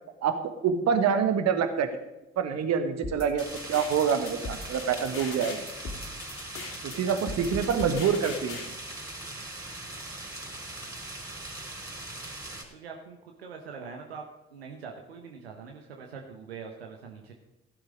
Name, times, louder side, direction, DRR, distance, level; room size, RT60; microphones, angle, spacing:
voice 1, 0.2-1.9 2.4-5.6 6.8-8.6, right 7 dB, 60° right, 8 dB, 1.5 m, -26 dB
sound 1, 3.0-8.7, left 3 dB, 50° left, 3.2 m, -39 dB
sound 2, 3.4-12.6, right 2 dB, 10° right, 4.0 m, -40 dB
voice 2, 12.7-14.2 14.5-17.3, right 5 dB, 90° right, 2 dB, 1.0 m, -43 dB
15.0 x 8.0 x 5.2 m, 0.97 s
hypercardioid pair, 45°, 30 cm